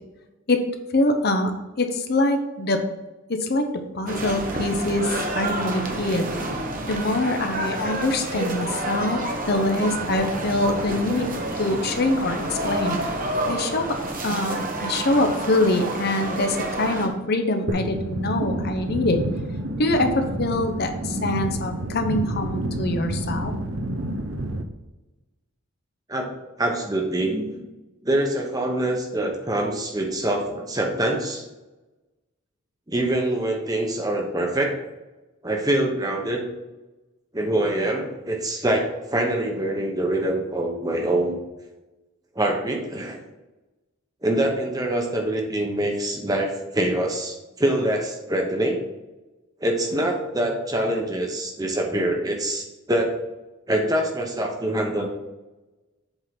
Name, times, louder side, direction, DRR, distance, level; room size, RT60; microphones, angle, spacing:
voice 1, 0.9-2.9 3.3-3.7 3.9-6.3 6.9-9.2 9.5-11.3 11.6-13.1 13.5-14.0 14.2-19.2 19.8-23.5, left 2 dB, 50° left, 5 dB, 0.8 m, -24 dB
sound 1, 4.1-17.1, right 2 dB, 40° right, 1.0 m, -29 dB
sound 2, 17.7-24.6, right 1 dB, 65° right, 0.8 m, -29 dB
voice 2, 26.6-27.5 28.0-31.4 32.9-34.8 35.4-36.5 37.3-41.4 42.3-43.2 44.2-48.8 49.6-53.1 53.7-55.1, right 1 dB, 15° right, 1 dB, 1.0 m, -24 dB
8.0 x 3.8 x 5.9 m, 1.1 s
head